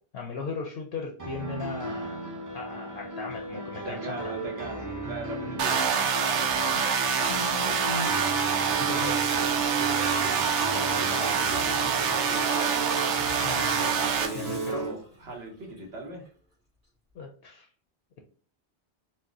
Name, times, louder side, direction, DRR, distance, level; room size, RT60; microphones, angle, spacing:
voice 1, 0.1-2.2 2.5-4.3 7.3-8.2 8.8-9.2 13.4-14.0 14.3-14.8 17.1-17.7, left 4 dB, 65° left, 2 dB, 0.7 m, -37 dB
sound 1, 1.2-14.9, right 3 dB, 25° right, 0.4 m, -34 dB
voice 2, 3.8-5.9 6.2-6.8 8.7-9.2 9.5-10.5 10.8-12.8 14.2-16.2, right 2 dB, 70° right, -1 dB, 1.2 m, -40 dB
sound 2, 5.6-14.3, right 6 dB, 85° right, 0.9 m, -26 dB
Water tap faucet / Sink (filling or washing), 6.2-15.9 16.3-16.4, right 1 dB, 50° right, 1.7 m, -45 dB
4.1 x 2.0 x 2.4 m, 0.42 s
omnidirectional pair, 1.2 m